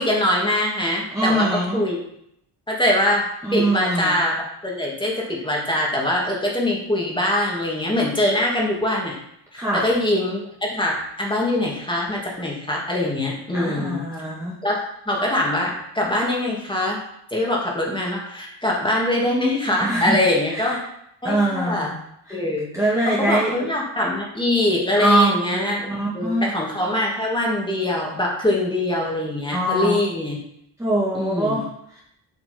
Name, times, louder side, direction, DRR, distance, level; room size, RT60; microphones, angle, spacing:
voice 1, 0.0-1.5 1.7-2.0 2.7-9.2 9.5-14.1 14.6-17.0 17.3-20.8 21.2-21.9 22.3-25.9 26.1-30.4 31.1-31.6, left 1 dB, 10° left, -3 dB, 2.6 m, -23 dB
voice 2, 1.1-1.8 3.4-4.2 9.5-9.8 13.5-14.5 19.8-20.2 20.5-20.8 21.2-21.9 22.3-22.4 22.7-23.5 25.0-26.5 29.5-30.0 30.8-32.0, right 1 dB, 5° right, -7 dB, 2.0 m, -23 dB
8.3 x 5.9 x 5.3 m, 0.74 s
cardioid pair, 110°, 45 cm